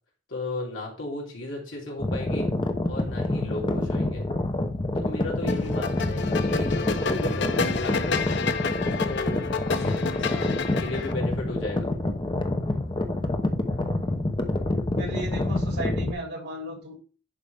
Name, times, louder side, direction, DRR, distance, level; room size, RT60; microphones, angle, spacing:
voice 1, 0.3-2.5 2.9-4.3 4.9-8.5 9.0-9.4 9.7-11.9, left 2 dB, 85° left, -2 dB, 3.2 m, -35 dB
sound 1, 2.0-16.1, left 1 dB, 25° left, 0.8 m, -27 dB
sound 2, 5.5-11.1, left 5 dB, 65° left, 0.7 m, -30 dB
voice 2, 15.0-17.0, equal, 60° right, 0 dB, 3.1 m, -35 dB
10.5 x 5.0 x 3.6 m, 0.38 s
head